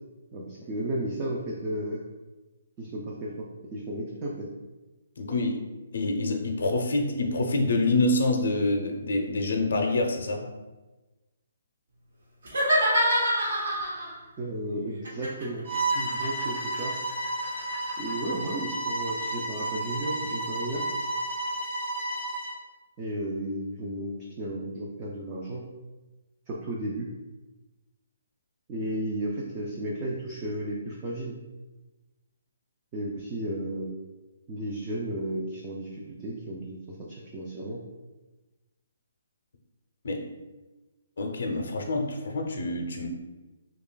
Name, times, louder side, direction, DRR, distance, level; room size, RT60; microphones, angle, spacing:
voice 1, 0.3-2.0 2.8-3.5 3.7-4.5 14.4-16.9 18.0-20.8 23.0-25.6 26.5-27.1 28.7-31.3 32.9-34.0 34.5-37.8, right 1 dB, 20° right, -4 dB, 0.4 m, -33 dB
voice 2, 5.2-5.7 5.9-10.5 40.0-40.2 41.2-43.1, left 2 dB, 65° left, 2 dB, 0.5 m, -26 dB
sound 1, 12.4-14.2 15.0-18.1, equal, 70° right, 1.2 m, -27 dB
Bowed string instrument, 15.6-22.6, right 2 dB, 35° right, 1.2 m, -31 dB
3.2 x 2.3 x 3.7 m, 1.1 s
hypercardioid pair, 170°, 0 cm